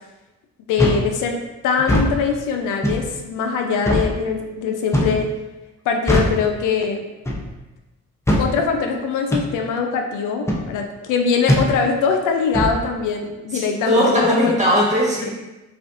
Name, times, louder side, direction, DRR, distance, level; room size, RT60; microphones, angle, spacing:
voice 1, 0.7-5.3 5.9-7.0 8.4-14.6 15.2-15.3, left 5 dB, 85° left, 3 dB, 0.5 m, -22 dB
sound 1, 0.8-1.1 1.8-2.1 2.8-3.1 3.9-4.1 4.9-5.2 6.1-6.4 7.3-7.5 8.3-8.5 9.3-9.5 10.5-10.7 11.5-11.7 12.5-12.8, left 1 dB, 10° left, 0.6 m, -19 dB
voice 2, 13.5-15.3, equal, 25° right, -4 dB, 1.3 m, -19 dB
5.1 x 2.4 x 2.5 m, 1.0 s
cardioid pair, 90°, 30 cm